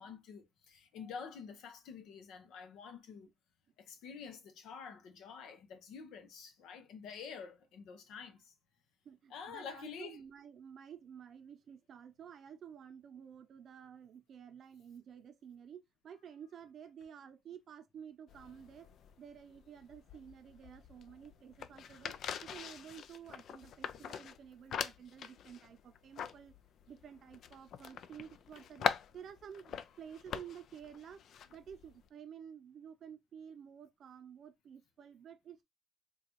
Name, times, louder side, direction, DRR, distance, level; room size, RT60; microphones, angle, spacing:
voice 1, 0.0-3.3 3.8-8.5 9.3-10.2, left 6 dB, 85° left, 0.8 m, -48 dB
voice 2, 9.0-18.9 19.2-22.1 22.4-26.5 26.9-35.6, right 8 dB, 60° right, 0.6 m, -52 dB
sound 1, 18.3-32.1, left 8 dB, 70° left, 0.3 m, -43 dB
3.8 x 2.3 x 2.9 m
cardioid pair, 90°, 0 cm